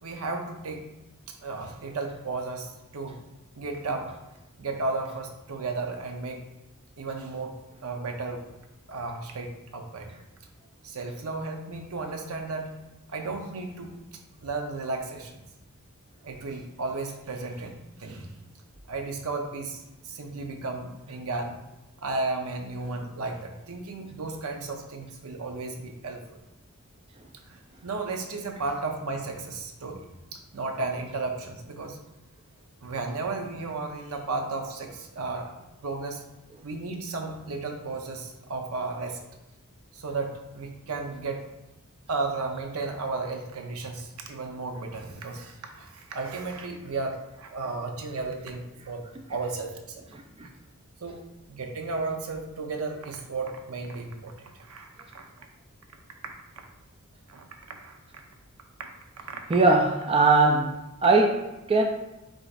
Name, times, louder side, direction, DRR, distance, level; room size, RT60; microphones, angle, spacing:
voice 1, 0.0-0.9 1.3-3.2 3.5-4.2 4.6-6.4 7.0-7.6 7.8-8.4 8.9-10.1 10.8-12.8 13.1-14.0 14.4-15.4 16.2-18.3 18.9-21.6 22.0-26.2 27.5-27.6 27.8-32.0 32.8-35.5 35.8-36.2 36.6-39.2 39.9-41.5 42.1-49.0 49.3-50.1 51.0-51.2 51.5-55.3 57.3-58.0 59.3-59.4, right 3 dB, 75° right, 3 dB, 0.6 m, -34 dB
voice 2, 59.5-60.7 61.0-61.8, right 3 dB, 25° right, 2 dB, 0.4 m, -20 dB
4.9 x 3.9 x 2.4 m, 0.97 s
head